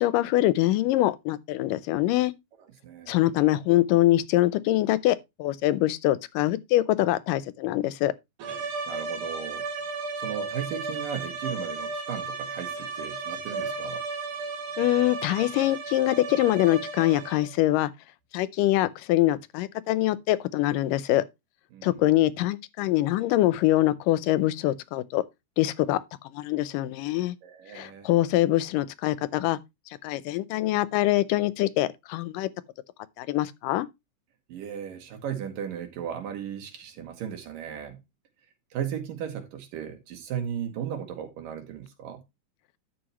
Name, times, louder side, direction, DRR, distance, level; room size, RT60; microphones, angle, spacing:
voice 1, 0.0-2.3 3.1-8.1 14.8-17.9 18.3-21.2 21.8-25.2 25.6-26.0 26.3-27.4 27.7-29.6 30.0-32.5 33.2-33.9, left 15 dB, 85° left, 2.4 m, -24 dB
voice 2, 2.8-3.2 8.9-9.6 10.2-14.0 21.7-22.0 27.4-28.1 34.5-38.0 38.7-42.2, right 9 dB, 85° right, 3.7 m, -36 dB
sound 1, 8.4-17.6, right 4 dB, 70° right, 3.8 m, -34 dB
11.0 x 7.8 x 3.0 m
omnidirectional pair, 3.8 m